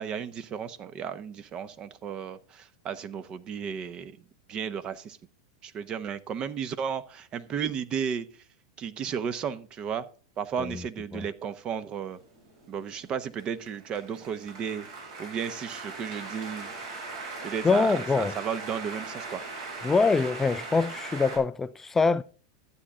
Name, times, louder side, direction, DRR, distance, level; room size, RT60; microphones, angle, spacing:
voice 1, 0.0-4.1 4.5-5.2 5.6-8.4 8.8-10.1 10.4-12.2 12.7-14.9 15.2-16.7 17.4-19.4, right 7 dB, 35° right, 1.0 m, -34 dB
sound 1, 12.1-21.4, right 3 dB, 65° right, 6.3 m, -40 dB
voice 2, 17.6-18.3 19.8-22.2, left 4 dB, 15° left, 0.4 m, -24 dB
12.5 x 8.7 x 3.7 m
hypercardioid pair, 110°, 3 cm